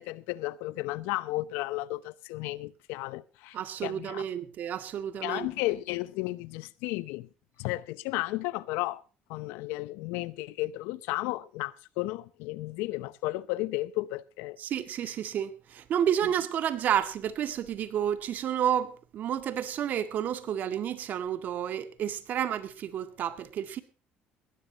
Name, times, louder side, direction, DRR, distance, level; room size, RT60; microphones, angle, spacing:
voice 1, 0.0-3.6 3.8-4.2 5.2-7.3 7.6-9.0 9.3-14.6, left 19 dB, 90° left, 0.8 m, -33 dB
voice 2, 3.5-5.5 14.6-23.8, right 9 dB, 55° right, 2.0 m, -30 dB
19.0 x 17.0 x 2.9 m
cardioid pair, 110°, 4 cm